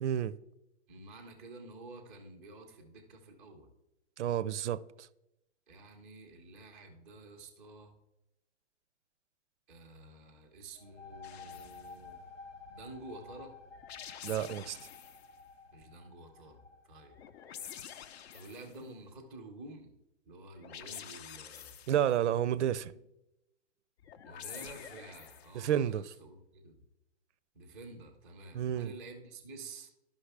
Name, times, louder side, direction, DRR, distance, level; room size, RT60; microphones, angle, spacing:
voice 1, 0.0-0.3 4.2-5.1 14.2-14.8 21.9-22.9 25.5-26.0 28.5-28.9, right 10 dB, 75° right, 0.5 m, -30 dB
voice 2, 0.9-3.7 5.7-8.0 9.7-12.2 12.7-13.5 15.7-17.2 18.3-19.9 20.3-21.8 22.5-22.7 24.2-26.8 27.5-29.9, right 2 dB, ahead, 0.3 m, -50 dB
sound 1, 10.8-18.2, left 4 dB, 90° left, 1.3 m, -52 dB
sound 2, 11.2-11.9 13.7-15.3 17.1-18.8 20.6-22.2 24.0-25.6, left 9 dB, 60° left, 0.6 m, -48 dB
12.0 x 5.4 x 3.3 m
hypercardioid pair, 140°, 36 cm